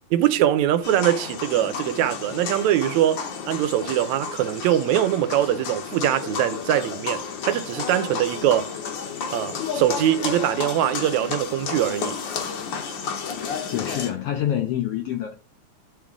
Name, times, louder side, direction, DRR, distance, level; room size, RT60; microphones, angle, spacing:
voice 1, 0.1-8.7 9.3-12.2, right 12 dB, 85° right, 1.9 m, -22 dB
sound 1, 0.8-14.1, left 6 dB, 60° left, 1.2 m, -32 dB
voice 2, 13.7-15.3, left 11 dB, 80° left, 1.3 m, -26 dB
10.5 x 3.5 x 3.7 m
omnidirectional pair, 3.4 m